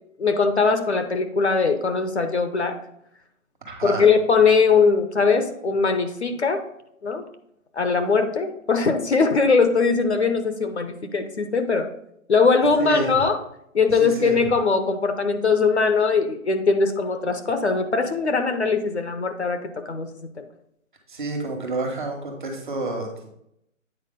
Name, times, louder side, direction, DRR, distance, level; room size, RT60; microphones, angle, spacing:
voice 1, 0.2-2.8 3.8-6.6 7.0-7.2 7.8-11.9 12.3-13.4 13.7-20.1 20.4-20.5, left 4 dB, 55° left, 8 dB, 0.8 m, -21 dB
voice 2, 3.6-4.1 12.8-13.2 14.0-14.4 21.1-23.3, right 2 dB, 35° right, 2 dB, 1.4 m, -29 dB
8.9 x 4.7 x 3.7 m, 0.75 s
hypercardioid pair, 175°, 41 cm